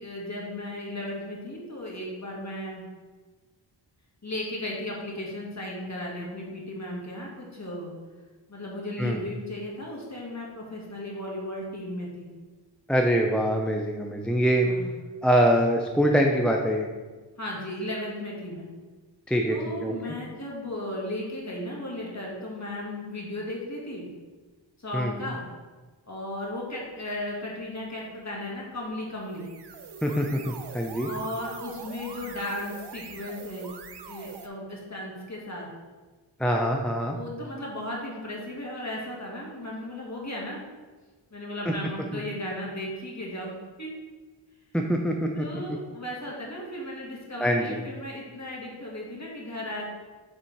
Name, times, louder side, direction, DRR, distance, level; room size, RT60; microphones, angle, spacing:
voice 1, 0.0-2.8 4.2-7.9 8.5-12.3 14.6-14.9 17.4-18.7 19.5-24.1 24.8-25.4 26.1-29.5 31.0-33.7 34.1-35.7 37.1-40.6 41.3-43.9 45.3-49.9, left 1 dB, 35° left, -3 dB, 1.8 m, -35 dB
voice 2, 12.9-14.7 15.2-16.9 19.3-19.6 19.8-20.2 24.9-25.1 30.0-31.1 36.4-37.2 44.7-45.5 47.4-47.8, equal, ahead, 1 dB, 0.5 m, -24 dB
sound 1, 29.2-34.5, right 6 dB, 60° right, 0.6 m, -43 dB
6.9 x 3.6 x 4.6 m, 1.3 s
wide cardioid pair, 65°, 46 cm